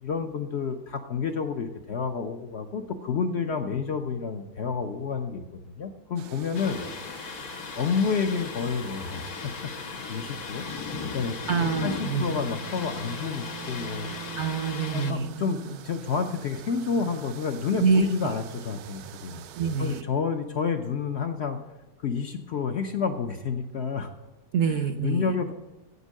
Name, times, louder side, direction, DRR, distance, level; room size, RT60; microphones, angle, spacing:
voice 1, 0.0-5.4 5.7-6.8 7.8-10.7 11.1-14.2 14.9-19.4 19.8-21.6 22.0-24.1 25.0-25.5, left 5 dB, 60° left, 5 dB, 0.7 m, -29 dB
sound 1, 6.2-20.0, right 11 dB, 80° right, 1.1 m, -44 dB
Thunder, 6.5-15.1, left 5 dB, 80° left, 1.5 m, -37 dB
voice 2, 11.5-12.2 14.4-15.3 17.8-18.1 19.6-20.0 24.5-25.3, right 5 dB, 60° right, 9 dB, 0.8 m, -25 dB
8.1 x 8.1 x 6.4 m, 1.0 s
omnidirectional pair, 1.6 m